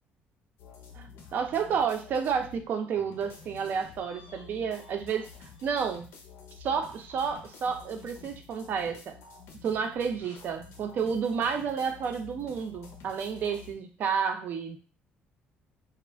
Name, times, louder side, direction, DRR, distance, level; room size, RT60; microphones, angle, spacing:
sound 1, 0.6-2.7 3.0-13.7, left 5 dB, 85° left, 0.6 m, -50 dB
voice 1, 0.9-6.1 6.6-9.2 9.6-14.8, right 6 dB, 55° right, 6 dB, 0.5 m, -31 dB
2.3 x 2.1 x 3.3 m, 0.35 s
cardioid pair, 145°, 4 cm